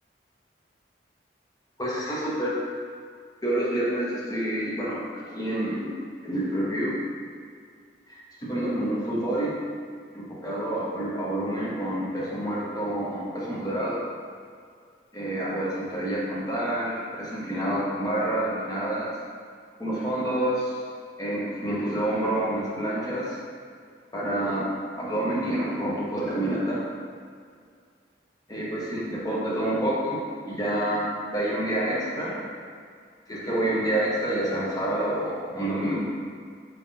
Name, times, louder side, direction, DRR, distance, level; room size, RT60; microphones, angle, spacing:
voice 1, 1.8-2.6 3.4-6.0 6.2-7.0 8.1-9.5 10.1-14.0 15.1-19.1 19.8-20.8 21.2-23.4 24.1-24.7 25.0-26.8 28.5-32.3 33.3-36.0, right 1 dB, 20° left, -7 dB, 0.7 m, -28 dB
4.4 x 3.7 x 2.6 m, 2.1 s
head